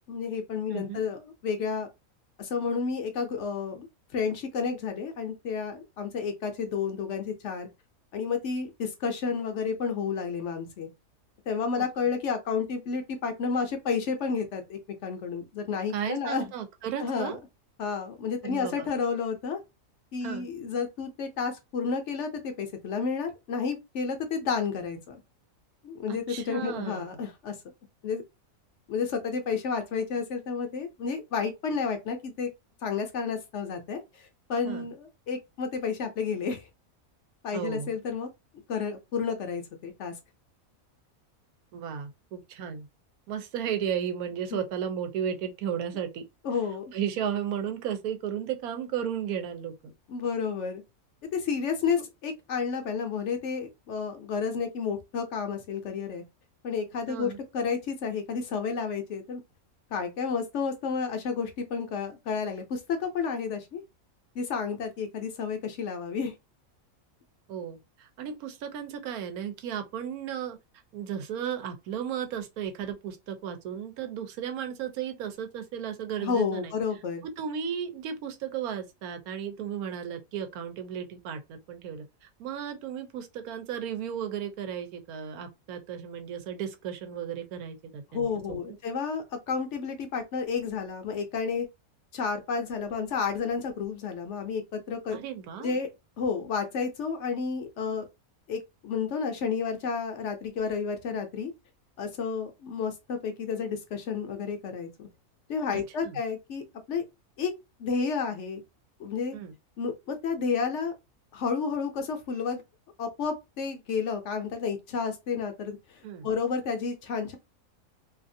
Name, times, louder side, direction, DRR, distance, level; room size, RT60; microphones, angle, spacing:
voice 1, 0.1-1.9 2.4-3.9 4.1-7.7 8.1-10.9 11.5-16.5 17.0-17.4 17.8-19.6 20.1-25.2 25.8-27.5 28.0-28.2 28.9-32.5 32.8-36.7 37.4-38.3 38.7-40.1 46.4-46.8 50.1-50.8 51.3-56.2 56.6-59.4 59.9-63.8 64.4-66.3 76.2-77.3 88.1-91.7 92.1-95.2 95.6-95.9 96.2-98.1 98.5-101.5 102.0-105.1 105.5-107.0 107.4-107.5 107.8-108.6 109.0-109.4 109.8-110.9 111.3-112.6 113.0-117.4, left 5 dB, 65° left, 0.8 m, -31 dB
voice 2, 0.7-1.0 11.8-11.9 15.9-17.4 18.4-18.9 20.2-20.5 26.1-27.1 34.7-34.9 37.5-37.9 41.7-42.9 43.3-46.2 46.9-49.9 52.0-52.1 57.1-57.4 67.5-70.6 70.9-76.7 77.2-88.6 95.1-95.8 105.7-106.2 109.3-109.5 116.0-116.3, right 8 dB, 90° right, 1.1 m, -34 dB
2.7 x 2.4 x 2.6 m
omnidirectional pair, 1.5 m